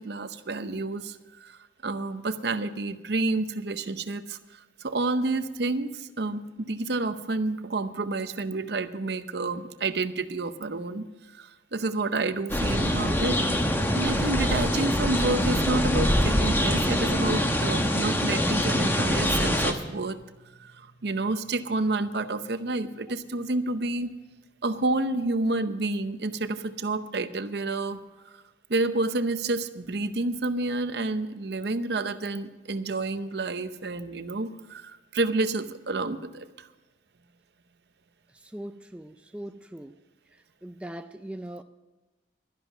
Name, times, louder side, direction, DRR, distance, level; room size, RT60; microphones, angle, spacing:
voice 1, 0.0-20.2 20.6-24.1 24.6-28.0 28.7-36.7, right 2 dB, 60° right, 0.7 m, -29 dB
sound 1, 12.5-19.7, equal, 10° left, 1.0 m, -24 dB
sound 2, 21.7-23.4, right 1 dB, 55° left, 2.0 m, -47 dB
voice 2, 38.5-39.9 40.6-41.6, right 1 dB, 5° right, 0.3 m, -40 dB
12.5 x 11.0 x 6.0 m
head